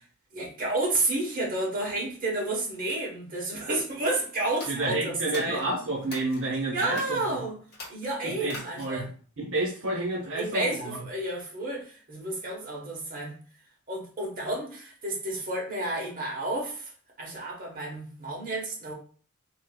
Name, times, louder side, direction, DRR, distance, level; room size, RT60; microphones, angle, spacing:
voice 1, 0.3-5.6 6.7-7.6 7.9-9.1 10.3-13.3 13.9-16.9 17.2-18.9, right 2 dB, 40° right, -1 dB, 1.0 m, -31 dB
sound 1, 4.5-6.4 6.9-7.3 7.7-9.1, left 2 dB, 50° left, 1.0 m, -44 dB
voice 2, 4.7-7.4 8.2-9.1 9.4-11.0, right 2 dB, 60° right, -3 dB, 0.7 m, -30 dB
3.6 x 2.7 x 2.2 m, 0.41 s
head